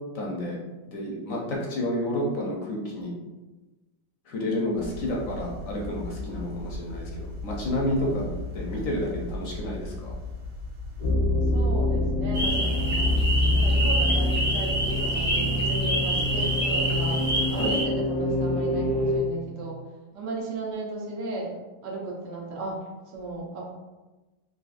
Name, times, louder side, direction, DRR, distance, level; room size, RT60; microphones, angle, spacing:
voice 1, 0.1-0.6 0.8-3.1 4.3-10.1 17.6-17.8, left 1 dB, 65° left, -2 dB, 0.9 m, -30 dB
sound 1, 4.7-11.1, left 2 dB, 65° right, 1.0 m, -37 dB
sound 2, 11.0-19.2, left 1 dB, 30° right, 0.8 m, -25 dB
voice 2, 11.5-13.2 13.5-17.2 17.5-19.8 20.1-21.6 21.8-23.7, right 3 dB, 85° right, -2 dB, 1.4 m, -35 dB
sound 3, 12.3-17.8, right 1 dB, 10° right, 0.5 m, -27 dB
4.1 x 2.5 x 2.5 m, 1.2 s
omnidirectional pair, 1.8 m